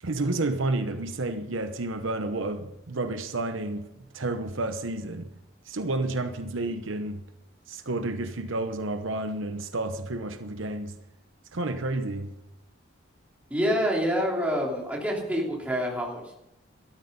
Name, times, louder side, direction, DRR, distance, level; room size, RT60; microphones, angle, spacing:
voice 1, 0.0-3.8 4.1-5.3 5.7-7.2 7.7-10.9 11.5-12.3, right 2 dB, 70° right, 0.9 m, -30 dB
voice 2, 13.5-16.3, equal, 5° right, 3.2 m, -27 dB
13.5 x 13.0 x 5.4 m
head